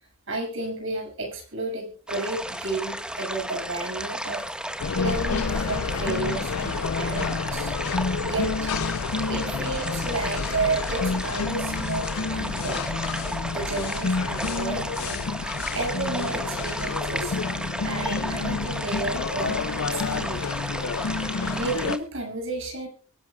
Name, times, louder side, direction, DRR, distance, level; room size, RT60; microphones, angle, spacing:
voice 1, 0.3-4.4 4.9-7.7 8.2-8.7 9.3-12.9 13.4-15.3 15.7-17.4 17.8-20.5 21.5-22.9, right 2 dB, 65° right, 2 dB, 6.6 m, -32 dB
sound 1, 2.1-22.0, right 1 dB, 5° right, 1.5 m, -33 dB
sound 2, 4.8-22.0, left 4 dB, 85° left, 0.6 m, -29 dB
24.5 x 11.5 x 2.3 m, 0.37 s
head